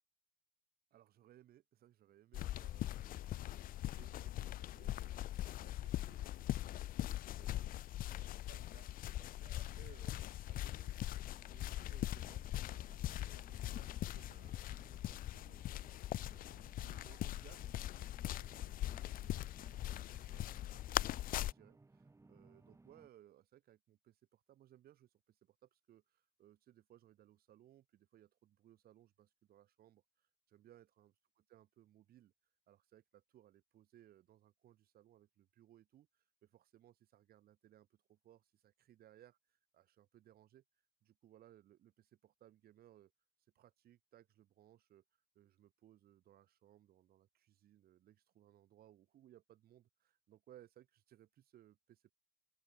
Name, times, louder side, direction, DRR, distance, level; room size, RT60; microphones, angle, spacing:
voice 1, 0.9-19.5 19.8-32.3 32.7-40.6 41.0-43.1 43.5-45.0 45.3-52.1, right 12 dB, 65° right, 5.0 m, -65 dB
sound 1, 2.3-21.5, left 14 dB, 55° left, 0.5 m, -41 dB
sound 2, 11.3-23.1, right 3 dB, 15° right, 4.1 m, -64 dB
open air
cardioid pair, 110°, 17 cm